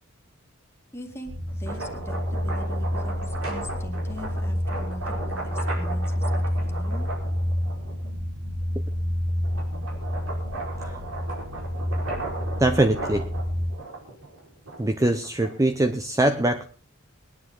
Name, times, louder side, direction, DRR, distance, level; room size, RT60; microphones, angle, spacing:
voice 1, 0.9-7.1, left 1 dB, 10° left, 1 dB, 2.2 m, -41 dB
sound 1, 1.3-13.7, equal, 45° right, 3.8 m, -29 dB
sound 2, 1.5-8.1 8.6-15.8, right 2 dB, 80° right, 4.7 m, -36 dB
voice 2, 12.6-13.3 14.8-16.6, right 1 dB, 15° right, 8 dB, 0.6 m, -22 dB
21.5 x 10.0 x 3.8 m, 0.38 s
head